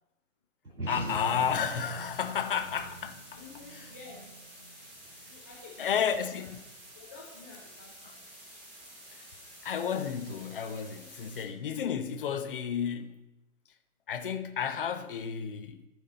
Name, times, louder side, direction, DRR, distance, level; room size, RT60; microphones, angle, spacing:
sound 1, 0.6-5.4, right 1 dB, 80° right, 2.0 m, -43 dB
voice 1, 0.9-3.4 3.7-3.9 5.8-6.6 9.1-9.3 9.6-13.3 14.1-15.8, left 7 dB, 40° left, 0.7 m, -32 dB
sound 2, 1.0-11.4, right 1 dB, 15° right, 2.9 m, -51 dB
voice 2, 3.4-4.4 5.3-6.5 6.9-8.2, left 4 dB, 10° left, 0.4 m, -50 dB
15.0 x 5.2 x 4.0 m
figure-of-eight pair, 125°, 43 cm